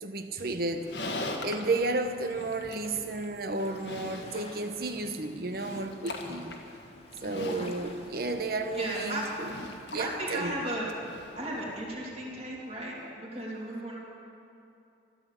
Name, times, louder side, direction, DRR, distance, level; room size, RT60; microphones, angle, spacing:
voice 1, 0.0-0.9 1.4-6.5 7.2-9.5 9.9-10.5, right 2 dB, 55° right, 7 dB, 1.0 m, -32 dB
Livestock farm animals working animals, 0.6-11.9, left 2 dB, 70° left, 1.5 m, -42 dB
sound 1, 3.6-10.5, left 2 dB, 35° left, 1.6 m, -51 dB
voice 2, 7.2-7.7 8.8-9.2 10.0-10.9 11.4-14.0, right 1 dB, 35° right, -5 dB, 2.8 m, -35 dB
13.0 x 11.5 x 8.2 m, 2.7 s
head